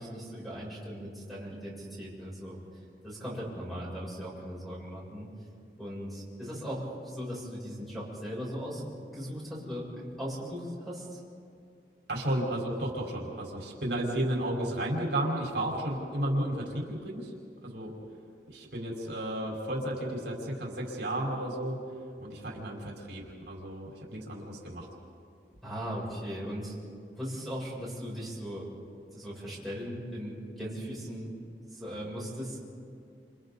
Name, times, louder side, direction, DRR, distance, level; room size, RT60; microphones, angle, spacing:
voice 1, 0.0-2.6 3.0-5.3 5.8-8.8 9.1-11.2 25.6-26.7 27.2-28.7 29.1-31.3 31.7-32.6, equal, ahead, -6 dB, 7.4 m, -38 dB
voice 2, 12.1-17.3 17.6-17.9 18.5-21.8 22.2-24.9, right 1 dB, 75° right, -2 dB, 4.6 m, -33 dB
29.5 x 29.0 x 4.1 m, 2.4 s
head